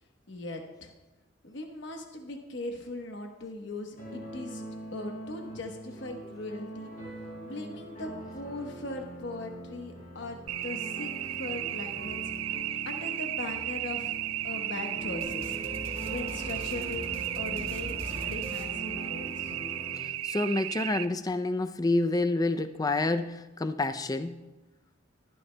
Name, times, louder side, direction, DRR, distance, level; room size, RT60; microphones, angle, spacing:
voice 1, 0.3-0.9 1.4-4.6 4.9-15.6 16.0-19.6, left 2 dB, 60° left, 3 dB, 1.0 m, -40 dB
sound 1, 4.0-19.9, right 1 dB, 45° left, 4.7 m, -43 dB
sound 2, 10.5-21.1, right 13 dB, 85° right, 0.3 m, -35 dB
sound 3, 15.2-19.5, equal, 30° right, 1.6 m, -42 dB
voice 2, 20.0-24.4, left 2 dB, 20° left, 10 dB, 0.4 m, -28 dB
21.0 x 9.9 x 2.2 m, 1.1 s
head